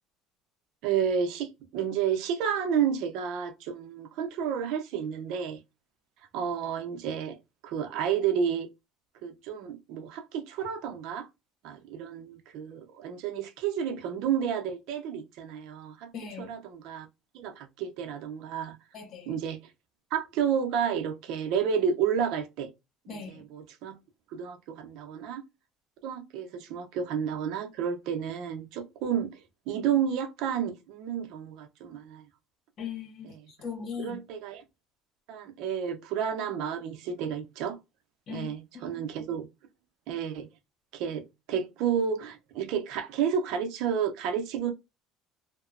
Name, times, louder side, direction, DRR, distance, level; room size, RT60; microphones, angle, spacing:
voice 1, 0.8-5.6 6.3-7.4 7.6-8.7 9.2-11.3 11.6-16.1 16.4-17.1 17.3-18.8 19.3-19.6 20.1-22.7 23.1-24.0 24.3-25.4 26.0-29.4 29.7-32.2 34.0-34.6 35.3-37.8 38.3-39.5 40.1-40.5 40.9-44.7, right 8 dB, 70° right, 0.7 m, -31 dB
voice 2, 16.1-16.5 18.9-19.3 23.1-23.4 32.8-34.2 38.3-38.5 38.7-39.0, left 6 dB, 50° left, 1.2 m, -39 dB
2.9 x 2.2 x 2.4 m
cardioid pair, 120°, 0 cm